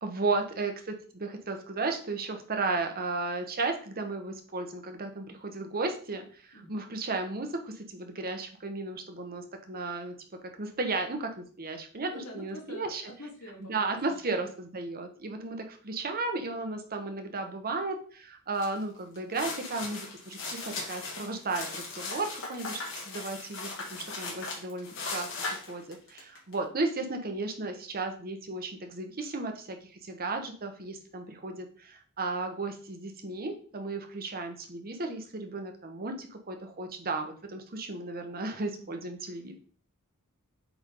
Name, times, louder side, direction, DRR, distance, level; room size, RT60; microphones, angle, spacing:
voice 1, 0.0-10.1 10.6-13.0 13.7-29.8 30.0-39.5, right 3 dB, 45° right, 5 dB, 1.1 m, -34 dB
voice 2, 12.1-14.5 38.8-39.1, equal, 85° left, -1 dB, 2.4 m, -47 dB
sound 1, 18.6-18.8 19.2-26.5, left 3 dB, 60° left, 2.3 m, -38 dB
8.1 x 3.6 x 3.8 m, 0.43 s
head